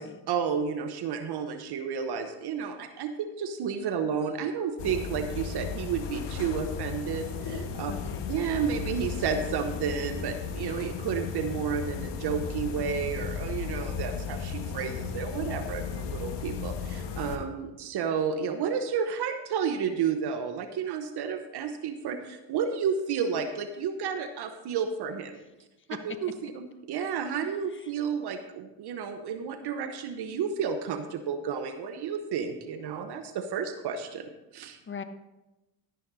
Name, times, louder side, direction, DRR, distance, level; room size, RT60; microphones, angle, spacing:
voice 1, 0.0-7.9 8.3-25.4 26.0-34.8, right 7 dB, 55° right, 8 dB, 1.0 m, -31 dB
sound 1, 4.8-17.4, left 6 dB, 60° left, 1.4 m, -35 dB
voice 2, 7.9-8.3 27.7-27.9 34.9-35.0, left 6 dB, 25° left, 10 dB, 1.0 m, -41 dB
13.0 x 10.5 x 2.7 m, 1.0 s
supercardioid pair, 75°, 48 cm